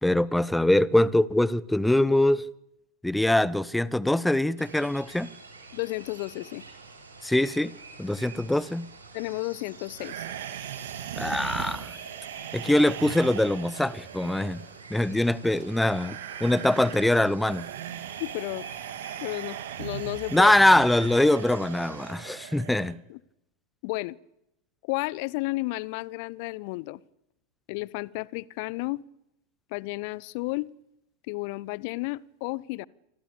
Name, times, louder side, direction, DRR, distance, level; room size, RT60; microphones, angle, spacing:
voice 1, 0.0-2.4 3.0-5.3 7.2-7.7 8.0-8.9 11.2-11.9 12.5-14.6 14.9-17.7 20.3-23.0, left 1 dB, 5° left, 0.9 m, -23 dB
sound 1, 4.6-22.1, right 3 dB, 75° right, 7.3 m, -48 dB
voice 2, 5.7-6.6 9.1-10.3 18.2-18.7 19.2-20.5 23.1-23.2 23.8-24.2 24.9-27.0 27.7-29.0 29.7-30.7 31.3-32.9, left 22 dB, 45° left, 0.9 m, -32 dB
sound 2, 10.0-22.9, right 10 dB, 55° right, 3.1 m, -39 dB
27.5 x 25.0 x 7.0 m
figure-of-eight pair, 90°, 0 cm